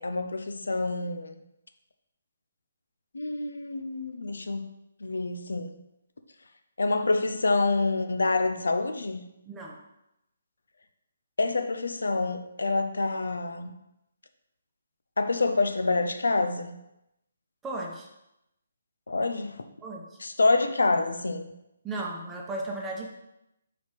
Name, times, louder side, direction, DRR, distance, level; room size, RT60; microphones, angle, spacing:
voice 1, 0.0-1.3 3.1-4.7 5.0-5.8 6.8-9.2 11.4-13.7 15.2-16.8 19.1-19.6 20.2-21.5, left 3 dB, 70° left, 8 dB, 0.6 m, -27 dB
voice 2, 9.5-9.8 17.6-18.1 19.8-20.2 21.8-23.1, right 2 dB, 10° right, -1 dB, 0.9 m, -35 dB
4.9 x 4.0 x 4.7 m, 0.86 s
figure-of-eight pair, 140°, 0 cm